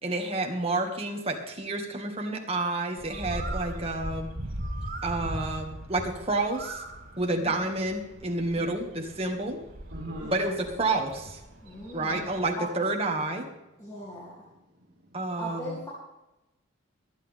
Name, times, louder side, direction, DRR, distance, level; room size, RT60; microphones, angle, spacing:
voice 1, 0.0-4.3 5.0-6.8 7.2-9.6 10.3-11.4 11.9-13.5 15.1-15.8, right 2 dB, 30° right, 1 dB, 1.9 m, -29 dB
Bird, 3.0-12.6, right 1 dB, 80° right, 3.2 m, -39 dB
voice 2, 8.6-8.9 10.2-10.5 11.6-12.2 12.6-12.7 13.8-14.4 15.4-15.9, equal, 15° left, -6 dB, 2.8 m, -40 dB
voice 3, 9.9-10.5 11.6-11.8 12.1-12.4 13.9-14.0 14.4-15.3, equal, 50° right, -4 dB, 2.4 m, -43 dB
24.5 x 8.9 x 3.6 m, 0.97 s
head